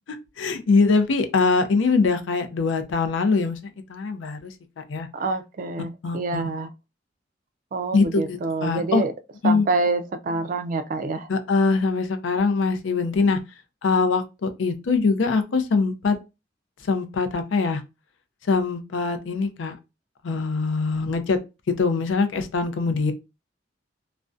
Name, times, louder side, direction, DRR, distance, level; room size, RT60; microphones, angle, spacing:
voice 1, 0.4-3.6 3.9-5.1 6.0-6.4 7.9-9.0 9.4-9.7 11.3-13.4 13.8-16.2 16.8-17.8 18.4-19.7 20.2-21.4 21.7-23.1, left 4 dB, 85° left, 0.4 m, -23 dB
voice 2, 5.1-6.7 7.7-9.1 9.4-11.3, right 3 dB, 45° right, 0.3 m, -26 dB
2.3 x 2.1 x 2.5 m
head